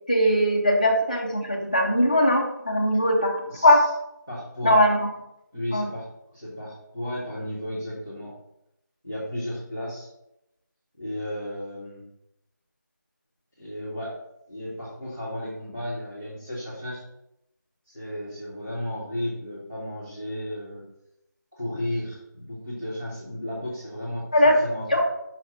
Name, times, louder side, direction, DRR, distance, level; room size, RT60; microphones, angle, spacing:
voice 1, 0.1-3.4 3.6-3.8 4.6-5.1 5.7-5.9 24.3-24.6 24.9-25.0, left 1 dB, 25° left, 0 dB, 0.8 m, -20 dB
voice 2, 3.5-3.9 4.3-4.8 5.5-6.1 6.3-8.3 9.0-10.1 11.0-12.0 13.6-14.1 14.5-17.0 17.9-20.8 21.5-25.0, left 1 dB, 10° right, -12 dB, 0.7 m, -34 dB
5.7 x 3.1 x 5.6 m, 0.84 s
figure-of-eight pair, 175°, 10 cm